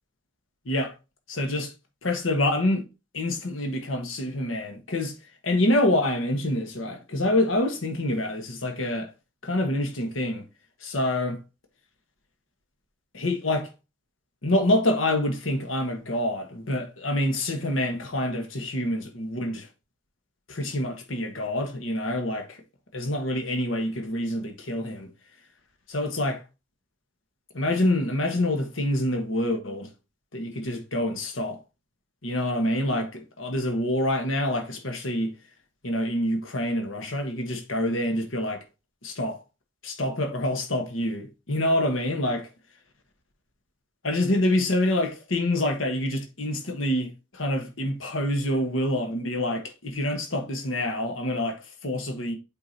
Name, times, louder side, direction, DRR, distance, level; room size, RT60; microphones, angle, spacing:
voice 1, 1.3-1.7 2.0-2.8 3.1-5.1 5.4-9.1 9.4-10.4 10.8-11.4 13.1-13.7 14.4-19.7 20.5-22.6 22.9-25.1 25.9-26.4 27.5-29.9 30.3-31.6 32.2-35.4 35.8-38.6 39.0-39.4 39.8-42.5 44.0-52.4, left 1 dB, 75° left, 1.4 m, -26 dB
8.5 x 4.6 x 2.8 m
head